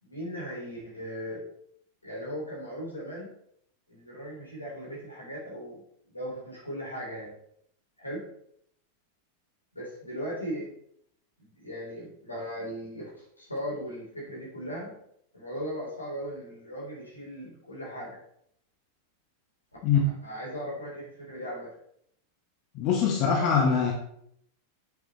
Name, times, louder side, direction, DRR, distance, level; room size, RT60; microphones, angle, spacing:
voice 1, 0.0-1.4 2.0-3.3 3.9-5.8 6.1-7.4 8.0-8.2 9.7-10.7 11.4-14.9 15.3-18.2 20.2-21.7, equal, 80° left, -4 dB, 3.9 m, -38 dB
voice 2, 22.7-23.9, left 6 dB, 40° left, 0 dB, 1.3 m, -23 dB
8.6 x 7.6 x 3.3 m, 0.72 s
figure-of-eight pair, 90°, 0 cm